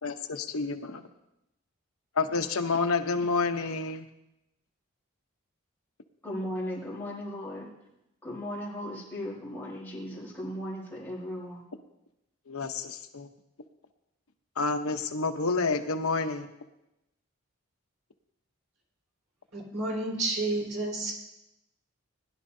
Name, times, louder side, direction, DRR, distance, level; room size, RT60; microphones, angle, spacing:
voice 1, 0.0-1.0 2.2-4.0 12.5-13.3 14.6-16.5, left 4 dB, 80° left, 7 dB, 0.9 m, -29 dB
voice 2, 6.2-7.7 8.2-11.6, equal, 10° left, -6 dB, 4.0 m, -36 dB
voice 3, 19.5-21.1, right 2 dB, 85° right, -3 dB, 4.3 m, -30 dB
20.0 x 11.5 x 2.7 m, 0.89 s
head